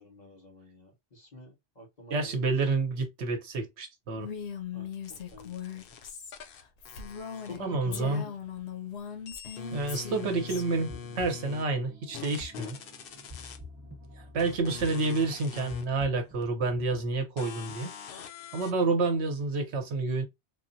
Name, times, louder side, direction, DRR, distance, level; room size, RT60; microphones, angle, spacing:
voice 1, 0.0-2.5 4.7-5.9 7.3-8.4, left 2 dB, 40° left, 1.4 m, -47 dB
voice 2, 2.1-4.3 7.6-8.2 9.7-12.8 14.2-17.9 18.5-20.2, right 3 dB, 75° right, 1.0 m, -29 dB
Female speech woman speaking, 4.1-7.6 7.9-10.6, left 7 dB, 85° left, 1.0 m, -39 dB
sound 1, 4.9-8.0 8.3-11.6 12.1-13.6 14.4-15.9 16.4-16.5 17.4-18.7, left 7 dB, 65° left, 0.7 m, -44 dB
sound 2, 10.6-17.1, left 1 dB, 25° right, 0.9 m, -49 dB
3.7 x 2.1 x 2.5 m
omnidirectional pair, 1.1 m